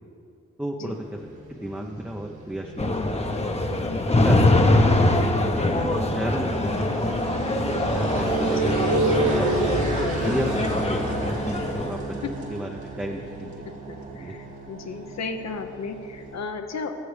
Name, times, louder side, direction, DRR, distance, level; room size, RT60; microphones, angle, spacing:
voice 1, 0.6-1.2 1.5-3.7 4.2-7.4 7.9-9.7 10.2-13.6 14.2-14.4, right 1 dB, 5° right, 1 dB, 0.6 m, -33 dB
sound 1, 0.9-16.4, right 3 dB, 70° right, 1.5 m, -31 dB
sound 2, 2.8-11.9, left 2 dB, 20° left, 0.8 m, -23 dB
voice 2, 8.4-8.8 12.2-12.3 13.6-17.0, left 4 dB, 60° left, 7 dB, 0.8 m, -34 dB
14.5 x 6.8 x 3.3 m, 2.5 s
supercardioid pair, 50°, 30 cm